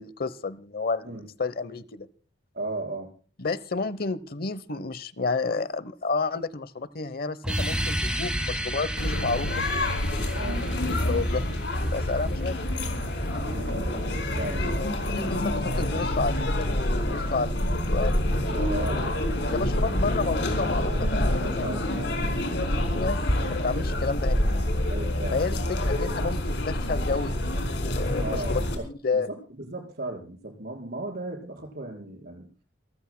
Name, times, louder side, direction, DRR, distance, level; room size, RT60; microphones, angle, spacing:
voice 1, 0.0-2.1 3.4-9.5 10.5-11.5 11.7-12.6 14.8-18.2 19.5-21.7 22.9-23.2 23.5-24.4 25.3-29.3, left 4 dB, 50° left, 16 dB, 0.9 m, -31 dB
voice 2, 2.5-3.1 10.3-10.6 13.4-14.6 18.5-19.8 20.2-20.3 21.0-21.1 21.4-22.1 24.9-25.7 28.2-28.8 29.1-32.5, right 2 dB, 55° right, 1 dB, 4.9 m, -36 dB
sound 1, 7.4-12.5, equal, 5° right, 1.7 m, -32 dB
sound 2, 8.5-15.3, right 1 dB, 85° right, 3.6 m, -43 dB
sound 3, 9.0-28.7, left 1 dB, 70° left, 4.6 m, -27 dB
28.5 x 14.5 x 2.2 m, 0.37 s
head